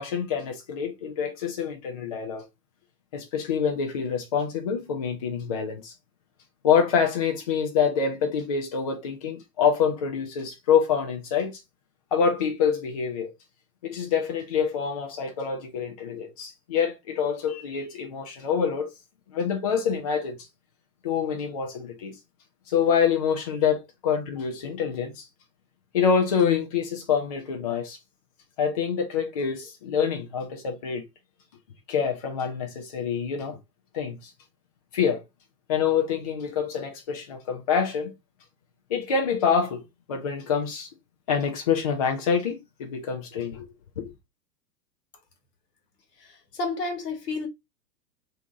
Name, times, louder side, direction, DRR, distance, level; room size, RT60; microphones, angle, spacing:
voice 1, 0.0-2.4 3.1-5.9 6.6-11.6 12.1-13.3 13.8-18.9 19.3-20.4 21.0-22.1 22.7-25.3 25.9-28.0 28.6-31.0 31.9-33.6 33.9-34.3 34.9-35.2 35.7-38.1 38.9-39.8 40.1-40.9 41.3-43.7 44.0-44.1, left 7 dB, 25° left, 0.3 m, -26 dB
voice 2, 46.2-47.5, left 3 dB, 70° left, 1.2 m, -31 dB
2.6 x 2.4 x 3.5 m
figure-of-eight pair, 105°, 50 cm